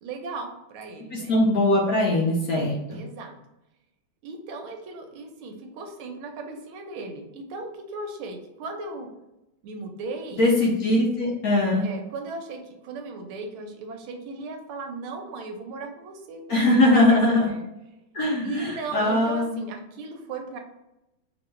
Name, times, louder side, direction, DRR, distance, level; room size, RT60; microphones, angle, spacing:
voice 1, 0.0-1.3 2.9-3.4 4.2-9.1 9.6-10.5 11.8-16.8 17.1-17.7 18.4-20.6, right 3 dB, 85° right, 4 dB, 1.6 m, -37 dB
voice 2, 1.1-3.0 10.4-11.9 16.5-17.5 18.1-19.6, left 1 dB, 65° left, -3 dB, 1.0 m, -21 dB
3.4 x 3.0 x 3.1 m, 0.92 s
omnidirectional pair, 2.2 m